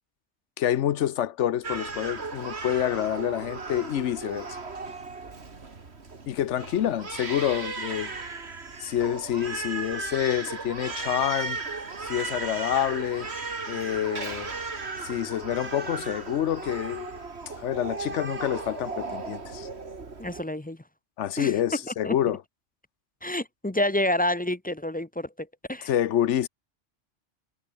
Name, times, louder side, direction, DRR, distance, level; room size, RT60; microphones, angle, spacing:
voice 1, 0.6-4.5 6.3-8.1 8.8-11.6 12.0-13.3 13.7-14.5 15.0-17.2 17.6-19.7 21.2-22.4 25.8-26.5, left 11 dB, 90° left, 1.1 m, -27 dB
Crying sobbing, 1.6-20.4, right 4 dB, 65° right, 2.6 m, -36 dB
voice 2, 20.2-20.8 21.4-21.5 22.0-22.2 23.2-25.9, left 1 dB, 10° left, 0.6 m, -28 dB
omnidirectional pair, 1.2 m